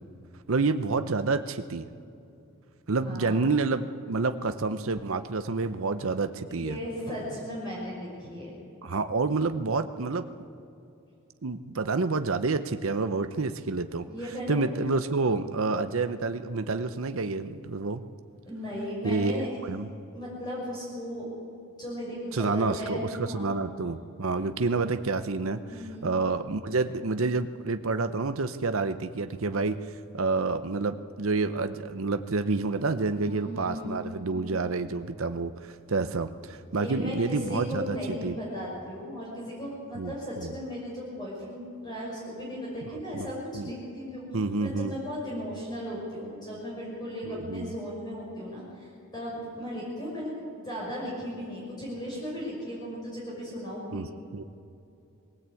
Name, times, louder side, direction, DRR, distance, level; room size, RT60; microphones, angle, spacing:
voice 1, 0.5-1.9 2.9-6.8 8.8-10.3 11.4-14.1 14.5-18.0 19.0-19.9 22.3-25.6 26.0-29.8 30.1-38.0 38.2-38.4 40.0-40.5 43.1-43.3 43.5-43.7 44.3-44.9 47.3-47.7 53.9-54.1 54.3-54.4, right 3 dB, 80° right, 9 dB, 0.8 m, -28 dB
voice 2, 3.0-3.4 6.5-8.5 14.1-14.6 18.4-19.8 20.1-21.3 21.8-23.6 25.7-26.2 33.2-34.7 36.7-54.1, equal, 20° left, -5 dB, 5.7 m, -36 dB
22.0 x 17.0 x 8.4 m, 2.7 s
head